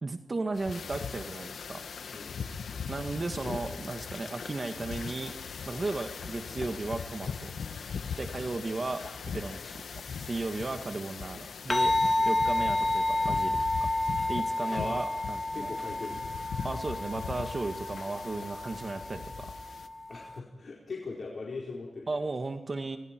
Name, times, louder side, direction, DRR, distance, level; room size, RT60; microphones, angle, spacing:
voice 1, 0.0-1.8 2.9-5.3 5.7-7.5 8.2-9.1 9.3-9.8 10.1-11.9 12.3-13.9 14.3-15.7 16.6-19.5 22.1-23.0, right 3 dB, 50° right, 6 dB, 1.9 m, -35 dB
sound 1, 0.5-19.9, left 6 dB, 90° left, 1.2 m, -40 dB
voice 2, 2.1-2.5 3.4-3.8 5.7-5.9 8.3-8.5 9.6-9.7 11.3-11.5 12.2-12.3 14.7-15.0 15.5-16.3 20.1-22.1, left 3 dB, 70° left, -3 dB, 4.5 m, -41 dB
sound 2, 11.7-20.4, left 1 dB, 30° left, 1.6 m, -30 dB
28.5 x 25.5 x 4.6 m, 0.98 s
cardioid pair, 50°, 0 cm